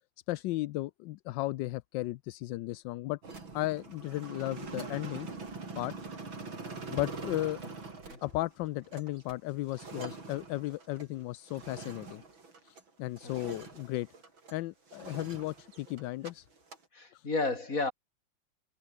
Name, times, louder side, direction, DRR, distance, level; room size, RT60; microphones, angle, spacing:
voice 1, 0.3-3.2 3.5-5.3 5.8-5.9 6.9-7.6 8.2-12.2 12.6-14.1 14.5-16.5 17.1-17.3, left 17 dB, 75° left, 1.2 m, -35 dB
sound 1, 3.2-12.9 13.2-14.6 14.9-16.3 16.6-16.8, right 4 dB, 75° right, 5.2 m, -44 dB
voice 2, 13.2-13.6 16.9-17.9, left 3 dB, 40° left, 4.5 m, -33 dB
omnidirectional pair, 2.2 m